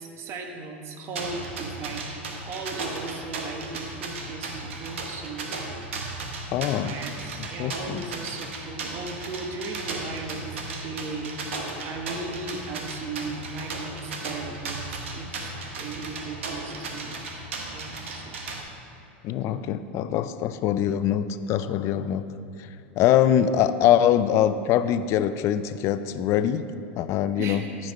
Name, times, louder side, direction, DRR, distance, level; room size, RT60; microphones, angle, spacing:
voice 1, 0.0-5.6 6.8-17.3 17.7-18.5 19.3-19.7 27.4-27.7, right 3 dB, 45° right, 3 dB, 1.1 m, -37 dB
sound 1, 1.2-18.6, right 3 dB, 85° right, 1.2 m, -35 dB
voice 2, 6.5-7.0 7.6-8.1 19.2-22.2 23.0-26.6 27.0-27.6, left 10 dB, 45° left, 12 dB, 0.4 m, -23 dB
13.0 x 5.3 x 4.2 m, 2.9 s
hypercardioid pair, 110°, 6 cm